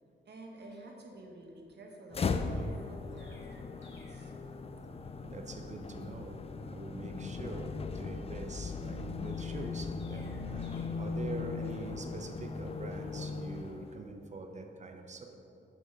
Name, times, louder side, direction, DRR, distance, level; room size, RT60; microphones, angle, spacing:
voice 1, 0.2-4.3, right 1 dB, 60° right, 0 dB, 1.2 m, -51 dB
sound 1, 2.1-14.1, left 4 dB, 30° left, 0.4 m, -38 dB
Chirp tweet, 2.5-4.3 9.2-10.8, left 2 dB, 70° left, 1.3 m, -62 dB
voice 2, 5.2-15.4, right 3 dB, 35° right, 5 dB, 0.7 m, -44 dB
8.2 x 3.6 x 5.6 m, 2.7 s
wide cardioid pair, 100°, 20 cm